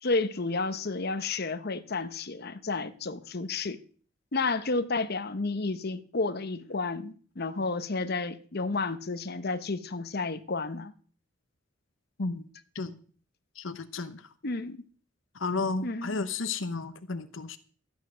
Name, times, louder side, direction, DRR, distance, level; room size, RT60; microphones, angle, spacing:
voice 1, 0.0-3.8 4.3-10.9 14.4-14.8 15.8-16.2, left 3 dB, 55° left, 1.0 m, -31 dB
voice 2, 13.6-14.2 15.3-17.6, left 3 dB, 80° left, 0.9 m, -32 dB
13.5 x 9.2 x 6.3 m
head